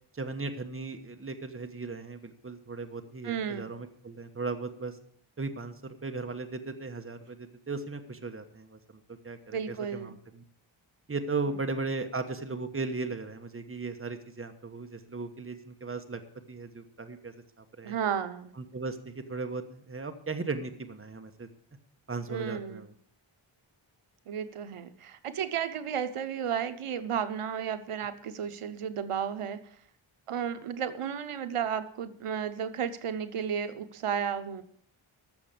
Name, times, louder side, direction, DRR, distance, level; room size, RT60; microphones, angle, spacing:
voice 1, 0.1-5.0 5.4-10.4 11.1-16.2 16.5-18.0 18.6-21.5 22.1-22.9, right 3 dB, 25° right, 7 dB, 1.2 m, -37 dB
voice 2, 3.2-3.7 9.5-10.1 11.5-11.6 17.8-18.5 22.3-22.8 24.3-29.6 30.3-34.6, right 8 dB, 90° right, 11 dB, 0.9 m, -33 dB
13.5 x 6.8 x 6.7 m, 0.62 s
wide cardioid pair, 120°, 50 cm